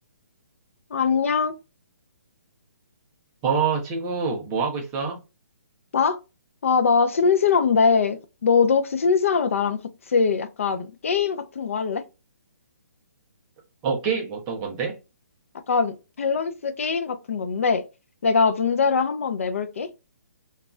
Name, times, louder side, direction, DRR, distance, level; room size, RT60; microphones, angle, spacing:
voice 1, 0.9-1.6 5.9-6.2 6.6-9.8 10.1-12.0 15.7-17.9 18.2-19.9, left 5 dB, 50° left, 0.4 m, -22 dB
voice 2, 3.4-5.2 13.8-15.0, right 6 dB, 10° right, 0.4 m, -26 dB
2.3 x 2.1 x 3.6 m
hypercardioid pair, 175°, 9 cm